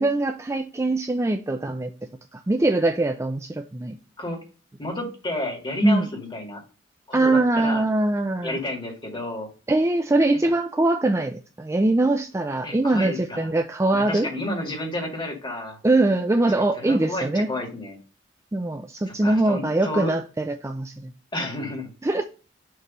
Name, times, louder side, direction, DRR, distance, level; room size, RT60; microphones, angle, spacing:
voice 1, 0.0-1.9 2.3-4.0 5.8-6.0 7.1-8.6 9.7-14.3 15.8-17.5 18.5-21.1 22.0-22.2, right 2 dB, 15° right, 0.4 m, -22 dB
voice 2, 4.8-6.6 7.1-7.8 8.4-9.5 12.6-13.5 13.9-15.8 16.8-18.0 19.1-20.1 21.3-22.3, left 1 dB, 25° left, 2.0 m, -31 dB
6.6 x 3.1 x 5.4 m
head